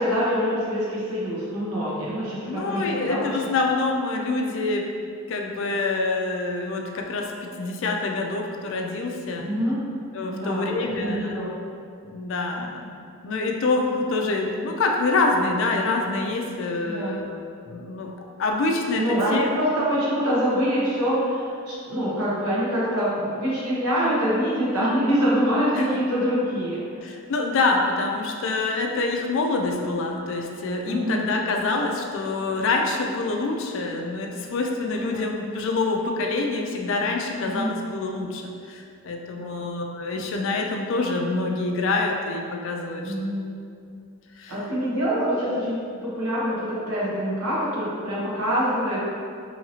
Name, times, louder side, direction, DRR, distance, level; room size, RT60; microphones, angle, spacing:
voice 1, 0.0-3.4 9.4-9.8 10.3-11.5 16.8-17.2 19.0-26.8 30.9-31.3 34.9-35.3 37.4-37.8 39.3-39.7 43.0-43.5 44.5-49.0, equal, 80° right, -7 dB, 0.9 m, -25 dB
voice 2, 2.4-4.9 5.3-9.5 10.1-11.4 12.0-12.9 13.2-17.3 17.6-18.1 18.4-19.5 25.7-25.9 27.0-43.1 44.4-44.6, left 3 dB, 60° left, 2 dB, 0.3 m, -26 dB
2.8 x 2.7 x 2.7 m, 2.3 s
head